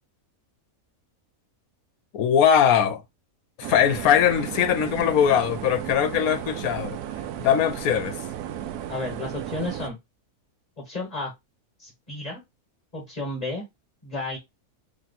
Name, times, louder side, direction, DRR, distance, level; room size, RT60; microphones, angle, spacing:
voice 1, 2.1-3.0 3.6-7.0 7.4-8.2, left 9 dB, 70° left, 1.1 m, -21 dB
sound 1, 3.6-9.9, right 11 dB, 90° right, 1.1 m, -34 dB
voice 2, 8.9-10.0 10.8-11.3 11.8-12.4 12.9-13.6 14.0-14.4, left 2 dB, 30° left, 1.3 m, -32 dB
3.3 x 3.0 x 4.0 m
omnidirectional pair, 1.6 m